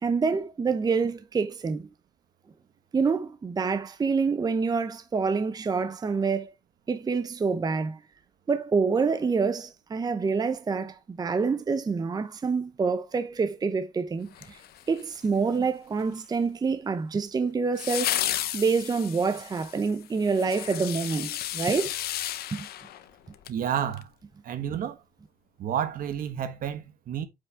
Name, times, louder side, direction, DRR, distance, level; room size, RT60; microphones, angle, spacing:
voice 1, 0.0-1.9 2.9-6.5 6.9-8.0 8.5-14.6 14.9-18.2 18.5-22.0 22.5-22.7, right 5 dB, 25° right, 0.7 m, -27 dB
sound 1, 14.3-15.3 17.8-23.6 23.9-24.0, left 13 dB, 85° left, 0.9 m, -33 dB
voice 2, 23.5-24.1 24.4-25.0 25.6-27.2, right 9 dB, 65° right, 1.5 m, -30 dB
8.2 x 5.6 x 3.5 m
cardioid pair, 135°, 15 cm